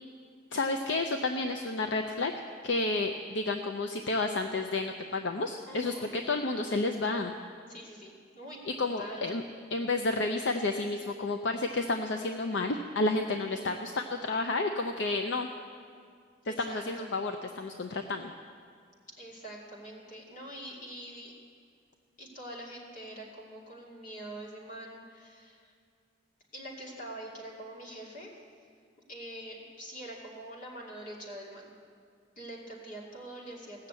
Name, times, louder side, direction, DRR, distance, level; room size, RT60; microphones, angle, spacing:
voice 1, 0.5-2.3 2.6-7.3 8.7-9.4 9.7-15.5 16.4-18.3, left 2 dB, 65° left, 5 dB, 0.6 m, -31 dB
voice 2, 5.7-6.1 7.7-9.3 13.4-13.8 16.5-17.1 19.2-21.3 22.2-25.7 26.5-28.3 29.1-31.7 32.4-33.9, right 1 dB, 45° left, -2 dB, 2.5 m, -44 dB
17.0 x 6.6 x 8.2 m, 2.2 s
head